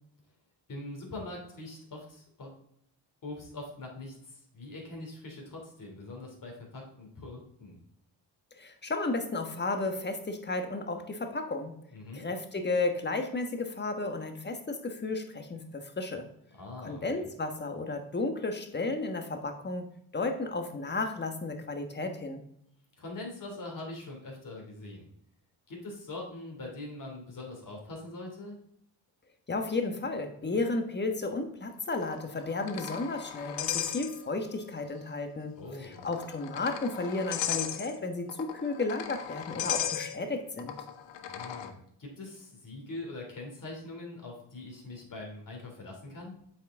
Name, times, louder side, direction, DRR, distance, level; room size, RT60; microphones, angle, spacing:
voice 1, 0.7-2.5 3.2-7.8 11.9-12.2 16.5-17.3 23.0-25.1 25.7-28.6 35.6-36.1 41.2-46.3, left 2 dB, 50° left, 0 dB, 3.0 m, -43 dB
voice 2, 8.6-11.7 12.1-16.3 16.8-22.4 29.5-40.7, left 3 dB, 25° left, 6 dB, 1.3 m, -33 dB
sound 1, 31.9-34.6 34.9-35.0 35.8-41.7, left 10 dB, 85° left, 0.8 m, -37 dB
7.8 x 4.8 x 3.7 m, 0.72 s
supercardioid pair, 65°, 42 cm